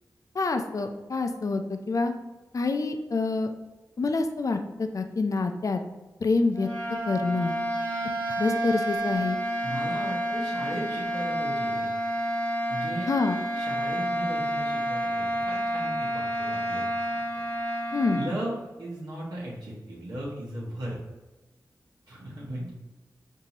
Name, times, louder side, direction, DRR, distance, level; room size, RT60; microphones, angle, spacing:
voice 1, 0.3-2.1 2.5-3.5 4.0-5.8 6.2-6.7 7.1-7.5 8.4-9.4 13.1-13.4 17.9-18.2, left 3 dB, 50° left, 6 dB, 0.4 m, -26 dB
sound 1, 6.5-18.3, right 1 dB, 20° left, 1.1 m, -29 dB
voice 2, 9.6-11.9 12.7-13.1 13.5-16.9 18.1-21.0 22.1-22.7, right 1 dB, 75° right, -7 dB, 0.9 m, -36 dB
4.0 x 2.7 x 2.9 m, 1.1 s
cardioid pair, 45°, 7 cm